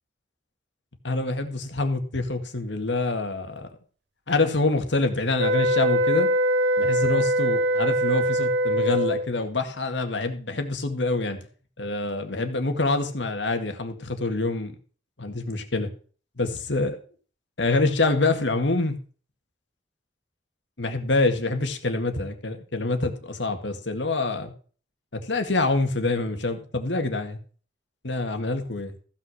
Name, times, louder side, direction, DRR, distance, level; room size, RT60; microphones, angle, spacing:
voice 1, 1.0-3.7 4.3-6.3 6.8-11.4 11.8-14.8 15.2-15.9 16.4-17.0 17.6-19.0 20.8-24.5 25.1-27.4 28.0-28.9, left 2 dB, 90° left, 6 dB, 2.0 m, -26 dB
sound 1, 5.4-9.3, right 1 dB, 65° right, 1.1 m, -22 dB
15.0 x 6.0 x 6.4 m, 0.41 s
head